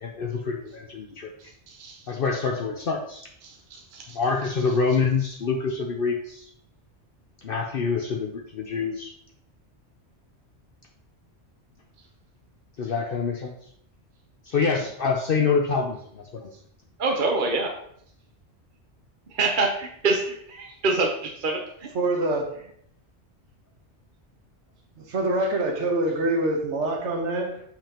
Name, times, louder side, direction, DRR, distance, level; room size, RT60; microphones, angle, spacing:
voice 1, 0.0-1.3 2.1-3.3 4.1-6.5 7.4-9.1 12.8-13.5 14.4-16.5, left 5 dB, 55° left, 2 dB, 0.8 m, -26 dB
voice 2, 1.4-2.1 3.4-4.2 17.0-17.8 19.3-21.9, right 3 dB, 50° right, 1 dB, 0.9 m, -27 dB
voice 3, 21.9-22.5 25.0-27.6, right 2 dB, 80° right, 3 dB, 1.4 m, -25 dB
7.0 x 5.8 x 2.9 m, 0.67 s
omnidirectional pair, 1.2 m